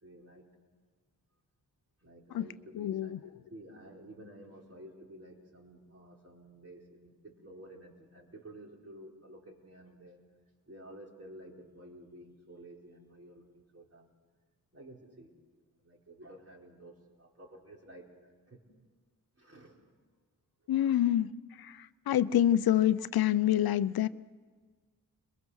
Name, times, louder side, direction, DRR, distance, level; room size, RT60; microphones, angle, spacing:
voice 1, 0.0-0.5 2.0-10.2 10.7-14.1 14.7-15.3 15.8-18.1 18.5-18.6 19.4-19.8, right 1 dB, 40° right, -1 dB, 4.4 m, -52 dB
voice 2, 2.8-3.2 20.7-21.3 21.6-24.1, left 11 dB, 85° left, 16 dB, 0.6 m, -27 dB
23.0 x 21.0 x 6.3 m, 1.5 s
cardioid pair, 60°, 36 cm